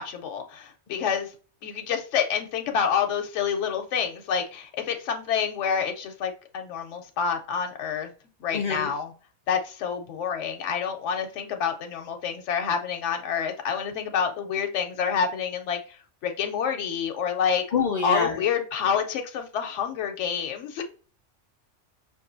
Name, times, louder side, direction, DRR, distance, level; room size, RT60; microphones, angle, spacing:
voice 1, 0.0-1.3 1.6-8.1 8.4-9.1 9.5-16.0 16.2-17.6 18.0-20.8, left 7 dB, 80° left, 0.9 m, -28 dB
voice 2, 8.5-8.9 17.7-18.3, left 5 dB, 60° left, 0.4 m, -25 dB
5.4 x 2.5 x 2.5 m
omnidirectional pair, 1.2 m